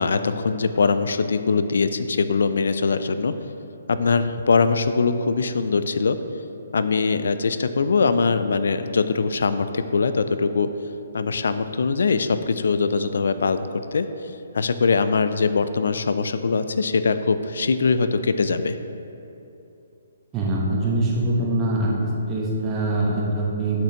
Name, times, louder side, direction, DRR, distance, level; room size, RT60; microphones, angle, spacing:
voice 1, 0.0-3.3 3.9-6.2 6.7-10.7 11.1-14.1 14.5-18.8, left 4 dB, 70° left, 11 dB, 0.3 m, -22 dB
voice 2, 20.3-23.8, right 2 dB, 20° right, -5 dB, 1.0 m, -23 dB
6.7 x 5.9 x 2.9 m, 2.8 s
figure-of-eight pair, 140°, 0 cm